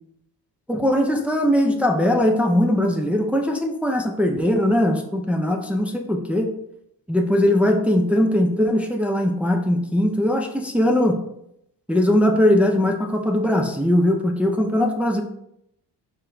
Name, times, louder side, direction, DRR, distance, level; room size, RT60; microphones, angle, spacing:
voice 1, 0.7-6.5 7.1-11.2 11.9-15.2, left 1 dB, 5° right, 2 dB, 0.5 m, -20 dB
4.6 x 2.9 x 3.7 m, 0.77 s
cardioid pair, 90°, 43 cm